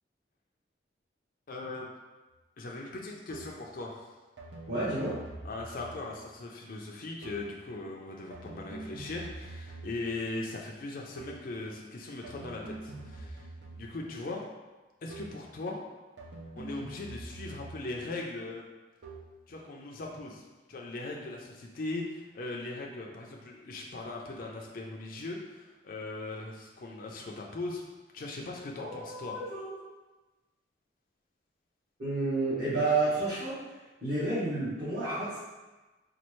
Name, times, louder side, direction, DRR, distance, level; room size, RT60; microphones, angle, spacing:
voice 1, 1.5-1.9 2.6-4.0 5.4-13.5 13.8-14.5 15.0-15.8 16.5-18.7 19.5-20.4 20.7-27.8 28.1-29.4, left 2 dB, 50° left, -1 dB, 0.4 m, -39 dB
sound 1, 3.3-3.7 4.4-6.3 7.2-7.6 8.3-10.2 11.2-11.6 12.2-14.2 15.1-15.5 16.2-18.1 19.0-19.4, right 2 dB, 70° right, 0.6 m, -45 dB
voice 2, 4.7-5.1 28.8-29.8 32.0-35.4, right 2 dB, 55° right, -16 dB, 1.5 m, -31 dB
4.2 x 2.4 x 3.0 m, 1.2 s
head